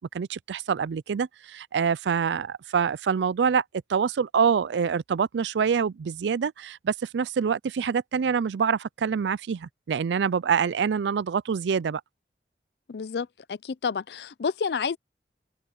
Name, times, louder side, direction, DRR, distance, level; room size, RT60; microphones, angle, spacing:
voice 1, 0.0-3.6 3.9-12.0, right 6 dB, 80° right, 0.4 m, -26 dB
voice 2, 12.9-15.0, left 5 dB, 65° left, 0.4 m, -30 dB
head